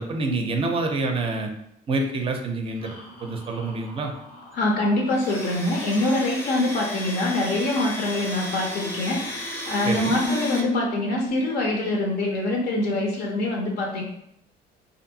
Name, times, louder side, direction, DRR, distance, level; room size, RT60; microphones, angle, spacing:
voice 1, 0.0-1.5 1.9-3.0 3.2-4.1 9.8-10.2, right 3 dB, 35° right, 4 dB, 0.4 m, -27 dB
sound 1, 2.8-6.2 8.9-9.4 9.7-9.8 10.2-11.3, equal, 90° left, 1.0 m, -35 dB
voice 2, 4.5-14.0, left 2 dB, 65° left, -1 dB, 0.5 m, -24 dB
Domestic sounds home sounds, 5.1-10.6, equal, 15° left, 0.6 m, -34 dB
2.6 x 2.5 x 2.6 m, 0.76 s
cardioid pair, 110°, 17 cm